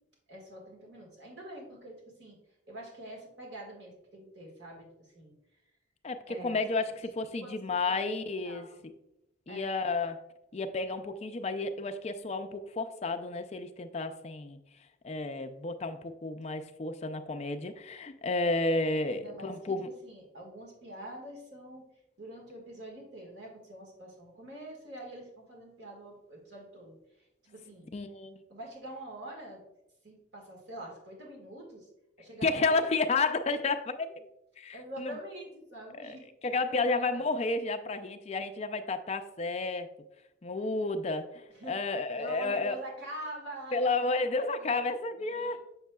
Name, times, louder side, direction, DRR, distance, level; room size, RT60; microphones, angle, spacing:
voice 1, 0.3-2.4 2.7-5.3 6.3-6.6 7.4-8.2 8.4-8.8 9.5-9.7 18.4-18.6 19.1-19.8 20.0-21.8 22.2-27.9 28.5-29.6 30.0-31.9 32.2-32.8 33.3-33.4 34.7-37.3 41.5-41.8 42.2-43.9 44.1-44.8 45.2-45.6, right 1 dB, 65° right, -1 dB, 1.7 m, -45 dB
voice 2, 6.0-8.9 9.5-10.2 10.5-14.6 15.0-19.9 27.9-28.4 32.4-34.1 34.6-35.1 36.0-36.2 36.4-39.9 40.4-42.8 43.7-45.6, left 3 dB, 35° left, 7 dB, 0.4 m, -31 dB
7.2 x 6.3 x 2.3 m, 0.88 s
head